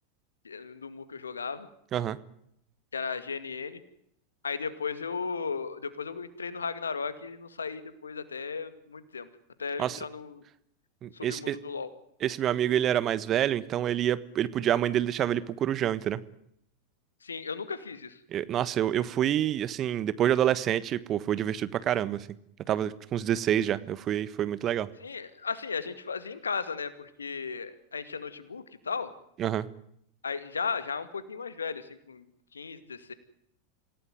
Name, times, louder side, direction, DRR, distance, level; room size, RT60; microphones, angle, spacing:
voice 1, 0.4-1.7 2.9-3.8 4.4-9.3 9.6-10.4 11.1-11.9 17.2-18.2 25.0-29.1 30.2-32.2 32.5-33.1, left 5 dB, 80° left, 13 dB, 2.2 m, -35 dB
voice 2, 11.0-11.6 12.2-16.2 18.3-22.3 22.7-24.9 29.4-29.7, right 11 dB, 35° right, 16 dB, 1.4 m, -27 dB
26.5 x 17.0 x 9.5 m, 0.73 s
figure-of-eight pair, 90°, 0 cm